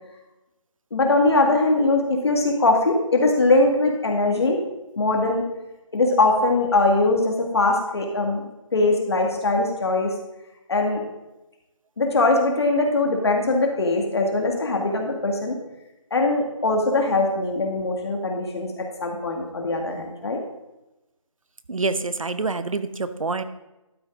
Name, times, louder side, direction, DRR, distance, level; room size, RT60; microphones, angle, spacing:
voice 1, 0.9-4.6 5.0-5.4 5.9-8.4 8.7-10.1 10.7-11.0 12.0-15.6 16.1-20.4, left 2 dB, 50° left, 2 dB, 1.9 m, -21 dB
voice 2, 21.7-23.4, right 3 dB, 75° right, 11 dB, 1.0 m, -26 dB
12.5 x 9.0 x 3.8 m, 0.98 s
figure-of-eight pair, 160°, 17 cm